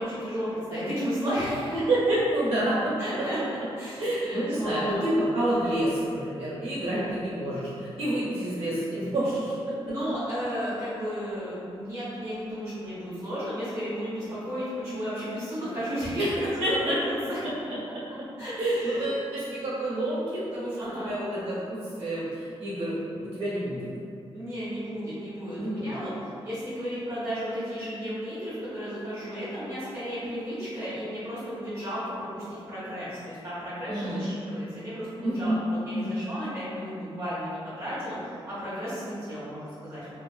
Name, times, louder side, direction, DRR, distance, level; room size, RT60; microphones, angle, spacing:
voice 1, 0.0-1.8 3.0-3.4 3.8-5.0 6.8-7.3 9.8-17.4 18.4-19.1 20.8-21.2 24.3-40.2, equal, 30° right, -14 dB, 1.4 m, -33 dB
voice 2, 1.9-2.9 4.0-9.9 16.6-16.9 17.7-18.0 18.6-23.9 25.6-25.9 33.9-34.3 35.2-35.6 35.9-36.2, right 1 dB, 90° right, -10 dB, 1.2 m, -28 dB
3.0 x 2.3 x 2.4 m, 2.5 s
wide cardioid pair, 145°, 10 cm